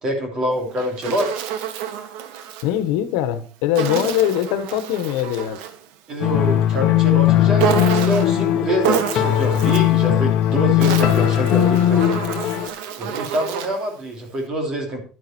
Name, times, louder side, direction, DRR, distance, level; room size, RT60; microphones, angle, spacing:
voice 1, 0.0-1.4 6.1-12.2 13.0-15.0, equal, 30° right, 3.1 m, -25 dB
Insect, 0.5-2.7 3.8-5.8 7.6-8.4 8.8-10.0 10.6-13.9, right 9 dB, 80° right, 1.3 m, -28 dB
voice 2, 2.6-5.6, left 11 dB, 85° left, 1.3 m, -22 dB
sound 1, 6.2-12.7, left 12 dB, 50° left, 1.0 m, -18 dB
10.5 x 9.7 x 4.5 m
cardioid pair, 180°, 2 cm